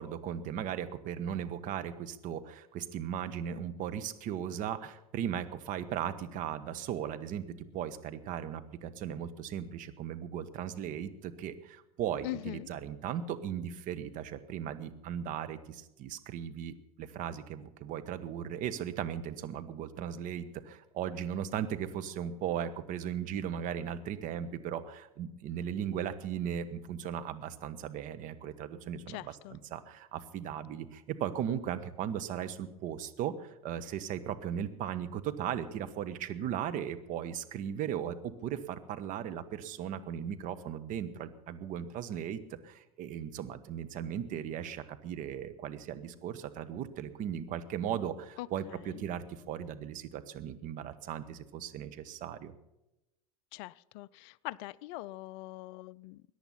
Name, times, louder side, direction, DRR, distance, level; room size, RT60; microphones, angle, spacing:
voice 1, 0.0-52.5, right 9 dB, 45° right, 11 dB, 1.4 m, -37 dB
voice 2, 12.2-12.7 29.1-29.6 48.4-49.0 53.5-56.2, left 18 dB, 50° left, 21 dB, 0.4 m, -42 dB
21.5 x 10.5 x 5.7 m, 0.93 s
figure-of-eight pair, 80°, 19 cm